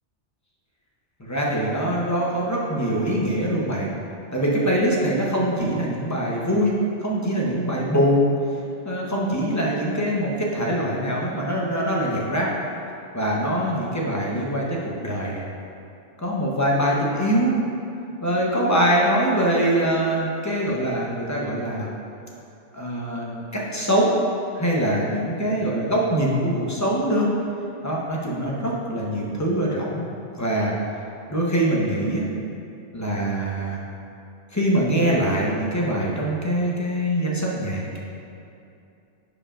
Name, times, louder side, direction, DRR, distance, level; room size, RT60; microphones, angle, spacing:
voice 1, 1.2-3.9 4.3-8.3 8.8-12.5 13.1-15.4 16.2-17.6 18.2-21.9 22.7-24.2 24.6-27.3 27.8-30.0 30.4-30.8 31.3-32.3 32.9-33.8 34.5-38.0, right 1 dB, 15° left, -4 dB, 0.8 m, -23 dB
10.5 x 5.0 x 2.5 m, 2.6 s
omnidirectional pair, 1.2 m